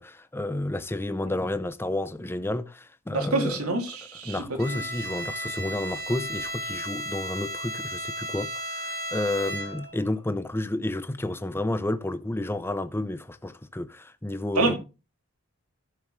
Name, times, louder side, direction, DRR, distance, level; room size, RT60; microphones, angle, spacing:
voice 1, 0.0-3.6 4.2-14.7, left 1 dB, 10° left, 0.6 m, -31 dB
voice 2, 3.1-4.8 14.5-14.8, right 3 dB, 85° right, 2.7 m, -27 dB
Bowed string instrument, 4.6-10.0, equal, 45° right, 2.8 m, -34 dB
16.0 x 7.2 x 3.2 m
head